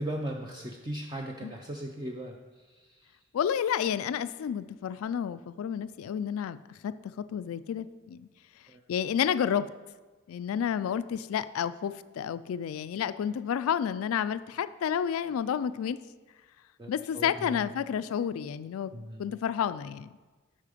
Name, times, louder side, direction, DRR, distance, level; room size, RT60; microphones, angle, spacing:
voice 1, 0.0-2.4 2.7-3.1 8.7-8.8 16.8-17.7 18.9-19.2, right 1 dB, 20° right, 1 dB, 0.5 m, -38 dB
voice 2, 3.3-6.6 6.8-8.3 8.9-9.7 10.3-16.0 16.9-18.9 19.2-20.1, left 8 dB, 75° left, 15 dB, 0.3 m, -30 dB
8.4 x 5.7 x 5.0 m, 1.3 s
head